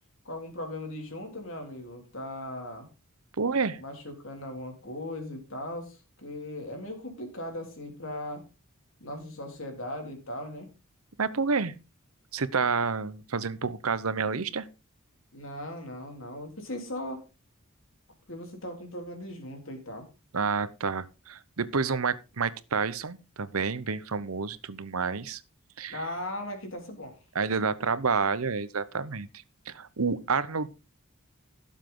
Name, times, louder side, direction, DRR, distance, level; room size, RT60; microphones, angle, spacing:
voice 1, 0.3-2.9 3.8-8.5 9.0-10.7 15.3-17.2 18.3-20.1 25.9-27.1, left 1 dB, 65° left, 3.6 m, -38 dB
voice 2, 3.4-3.8 11.2-11.7 12.3-14.7 20.3-25.4 25.8-26.0 27.3-29.3 29.7-30.7, right 5 dB, 85° right, 0.9 m, -29 dB
16.5 x 7.4 x 3.8 m
head